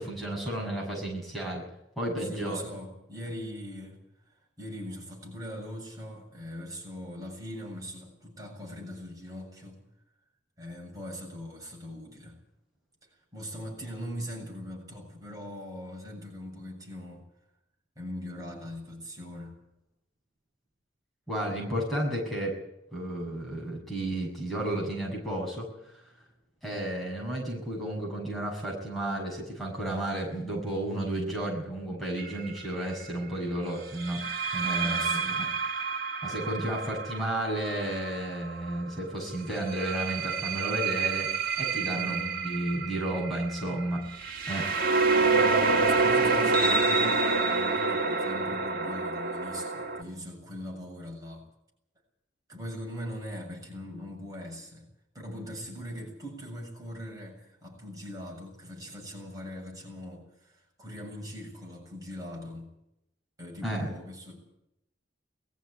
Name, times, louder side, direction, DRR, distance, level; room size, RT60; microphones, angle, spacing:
voice 1, 0.0-1.6 2.0-2.6 21.3-22.6 22.9-26.1 26.6-34.2 34.5-35.9 36.2-41.3 41.6-44.0 44.5-44.8 63.6-63.9, right 1 dB, ahead, -3 dB, 6.8 m, -32 dB
voice 2, 2.2-9.8 10.6-12.4 13.0-17.3 18.0-19.6 34.8-35.4 41.9-42.5 45.3-51.4 52.5-54.9 55.1-62.7 63.4-64.4, equal, 20° right, -1 dB, 7.5 m, -41 dB
sound 1, 32.2-32.5 34.0-38.7 39.5-50.0, right 4 dB, 50° right, 2.6 m, -28 dB
21.0 x 14.5 x 9.9 m, 0.81 s
head